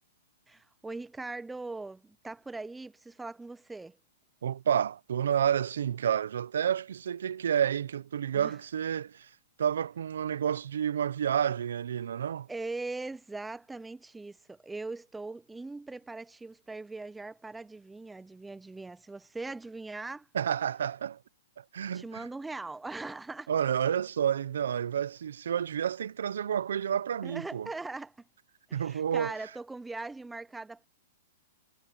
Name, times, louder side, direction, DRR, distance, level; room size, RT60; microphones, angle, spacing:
voice 1, 0.5-4.0 8.3-8.5 12.5-20.3 21.9-23.5 27.2-28.1 28.7-30.9, right 3 dB, 5° right, 0.4 m, -40 dB
voice 2, 4.4-9.3 9.6-12.5 20.3-21.2 21.6-22.3 23.5-27.7 28.7-29.4, right 9 dB, 85° right, 0.5 m, -30 dB
hypercardioid pair, 170°, 0 cm